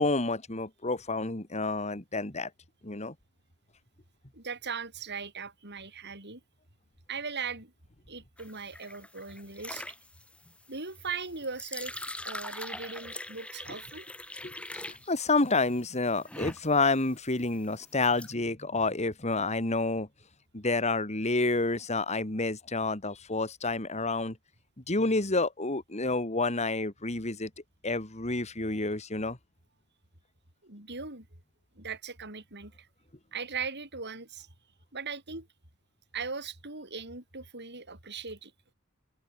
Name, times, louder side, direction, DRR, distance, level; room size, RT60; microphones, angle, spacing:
voice 1, 0.0-2.5 2.8-3.1 14.4-20.1 20.5-24.4 24.9-27.5 27.8-29.4, left 3 dB, 30° left, 2.2 m, -29 dB
voice 2, 4.3-6.4 7.1-7.7 8.1-9.9 10.7-14.1 30.6-31.3 31.8-32.9 33.3-34.5 34.9-35.5 36.1-38.5, right 5 dB, 50° right, 7.3 m, -39 dB
sound 1, 8.4-18.3, left 1 dB, 5° left, 1.2 m, -42 dB
head